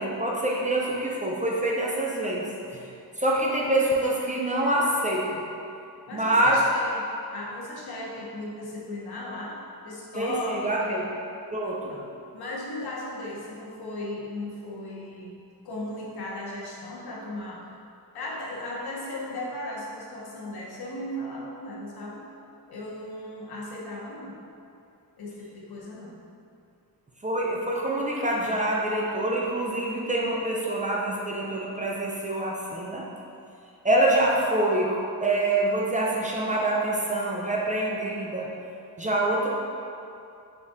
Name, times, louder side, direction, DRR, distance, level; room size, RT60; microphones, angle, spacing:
voice 1, 0.0-2.8 3.2-5.4 6.1-6.6 10.1-11.0 11.5-12.0 27.2-33.1 33.8-38.5 39.0-39.5, right 1 dB, 20° right, -3 dB, 0.3 m, -26 dB
voice 2, 6.1-9.6 9.8-11.1 11.9-12.0 12.3-15.3 15.6-17.7 18.1-22.3 22.7-24.4 25.2-26.1, left 1 dB, 85° left, -4 dB, 0.9 m, -36 dB
4.8 x 3.4 x 2.7 m, 2.6 s
wide cardioid pair, 175°, 37 cm